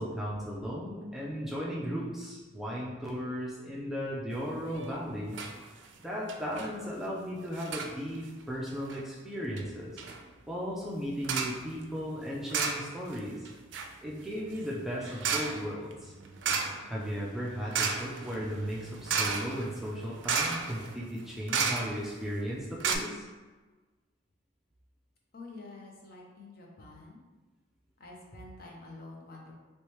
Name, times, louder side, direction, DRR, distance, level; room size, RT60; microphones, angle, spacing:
voice 1, 0.0-5.4 6.0-10.0 10.5-13.5 14.0-16.1 16.8-23.2, equal, ahead, -6 dB, 0.4 m, -36 dB
sound 1, 4.7-5.0 5.3-5.6 5.8-5.9 6.3-6.7 7.5-7.9 8.7-9.0 9.6-9.7 10.0-10.2 11.2-11.6 12.5-13.2 13.4-22.2 22.5-22.6 22.8-22.9, right 5 dB, 70° right, 0.4 m, -33 dB
voice 2, 25.3-27.3 28.0-29.5, left 2 dB, 50° left, -2 dB, 0.7 m, -48 dB
3.2 x 3.1 x 3.0 m, 1.3 s
head